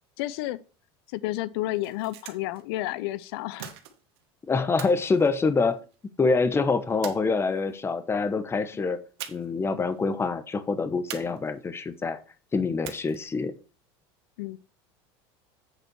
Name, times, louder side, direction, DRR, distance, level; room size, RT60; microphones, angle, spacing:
voice 1, 0.2-0.6 1.1-3.7 14.4-14.6, left 16 dB, 80° left, 0.4 m, -31 dB
sound 1, 1.7-2.6 3.6-4.2 4.8-6.0 7.0-7.8 9.2-9.7 9.9-10.0 11.1-11.8 12.8-13.4, right 10 dB, 90° right, 1.4 m, -42 dB
voice 2, 4.5-5.8 6.2-9.0 9.3-12.2 12.5-13.5, left 4 dB, 20° left, 0.9 m, -25 dB
8.2 x 4.3 x 6.2 m
supercardioid pair, 115°, 13 cm